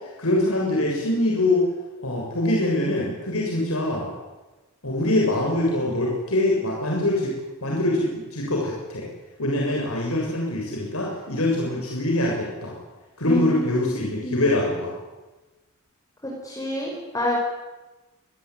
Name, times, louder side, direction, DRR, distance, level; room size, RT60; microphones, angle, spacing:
voice 1, 0.2-1.6 2.0-4.1 4.8-7.3 7.6-9.1 9.4-12.7 13.2-14.9, left 1 dB, 75° left, -2 dB, 7.0 m, -24 dB
voice 2, 13.2-13.9 14.2-14.4 16.2-17.4, left 1 dB, 15° left, -3 dB, 6.4 m, -28 dB
27.0 x 20.5 x 9.7 m, 1.1 s
head